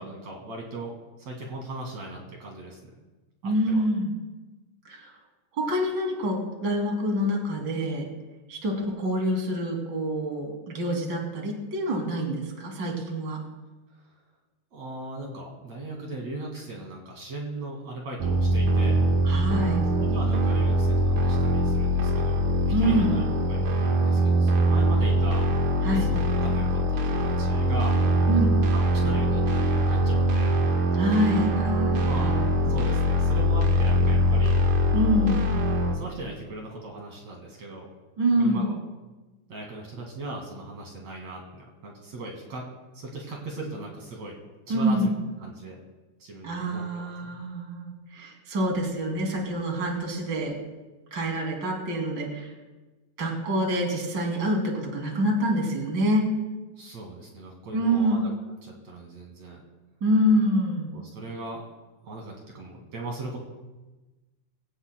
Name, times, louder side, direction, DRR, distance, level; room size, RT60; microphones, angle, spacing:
voice 1, 0.0-2.9 3.4-3.8 14.0-14.2 14.7-19.0 20.0-25.4 25.8-28.0 28.7-30.5 32.0-32.3 32.7-34.6 35.9-37.9 38.4-38.8 39.5-44.3 44.7-45.1 45.4-45.8 46.2-47.4 56.8-58.3 58.6-59.6 60.9-61.7 62.0-63.4, right 2 dB, 60° right, -1 dB, 3.4 m, -38 dB
voice 2, 3.4-4.1 4.9-5.1 5.5-8.0 8.5-13.4 19.2-19.8 22.7-23.2 25.8-26.1 28.3-28.6 30.9-32.7 34.9-35.5 38.2-38.7 44.7-45.1 46.4-50.6 51.1-52.5 53.2-56.3 57.7-58.3 60.0-60.9, equal, 40° right, 0 dB, 3.2 m, -26 dB
sound 1, 18.2-36.0, equal, 80° right, 3.1 m, -23 dB
23.0 x 17.0 x 2.3 m, 1.2 s
omnidirectional pair, 3.5 m